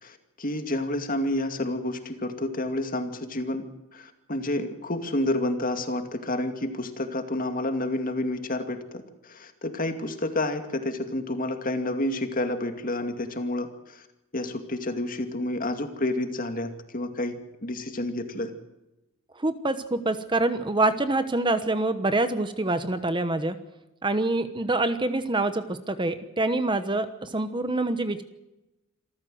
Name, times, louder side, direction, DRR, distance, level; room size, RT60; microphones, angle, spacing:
voice 1, 0.0-3.7 3.9-14.0 14.3-18.5, left 1 dB, 40° left, 7 dB, 2.3 m, -29 dB
voice 2, 19.4-23.6 24.0-28.2, right 2 dB, 25° right, 11 dB, 1.1 m, -26 dB
27.0 x 14.5 x 7.8 m, 0.96 s
head